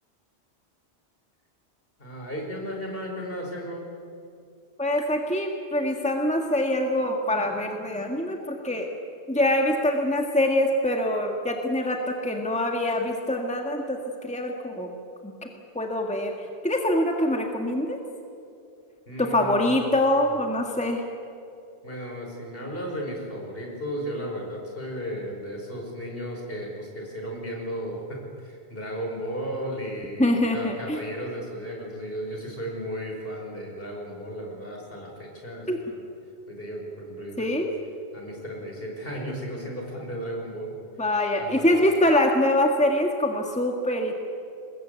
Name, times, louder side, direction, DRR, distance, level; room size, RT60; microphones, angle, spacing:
voice 1, 2.0-3.9 19.1-20.4 21.8-36.0 36.5-37.6 38.1-40.7 41.4-41.9, equal, 55° left, 0 dB, 5.6 m, -35 dB
voice 2, 4.8-8.9 9.3-15.0 15.2-15.4 15.8-16.3 16.6-18.0 19.2-21.0 30.2-31.0 35.7-35.8 37.4-37.7 41.0-44.1, left 1 dB, 5° left, 2 dB, 1.8 m, -24 dB
24.0 x 20.5 x 8.3 m, 2.6 s
omnidirectional pair, 1.1 m